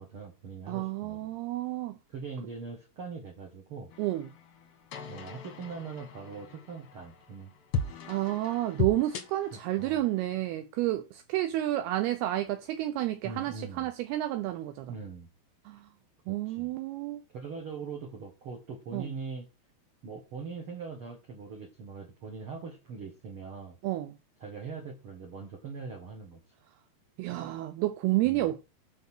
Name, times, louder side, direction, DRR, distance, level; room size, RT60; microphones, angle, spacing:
voice 1, 0.0-1.3 2.1-3.9 5.1-7.5 9.5-10.0 13.2-13.9 14.9-15.3 16.3-16.7 17.3-19.4 20.0-23.8 24.4-26.4 28.2-28.5, right 5 dB, 60° right, 1.5 m, -42 dB
voice 2, 0.7-2.0 4.0-4.3 8.1-14.9 15.7-15.9 16.3-17.2 18.9-19.1 23.8-24.2 27.2-28.7, right 15 dB, 80° right, 2.6 m, -30 dB
sound 1, 3.9-10.4, left 4 dB, 65° left, 1.6 m, -38 dB
9.5 x 5.3 x 6.2 m
omnidirectional pair, 4.8 m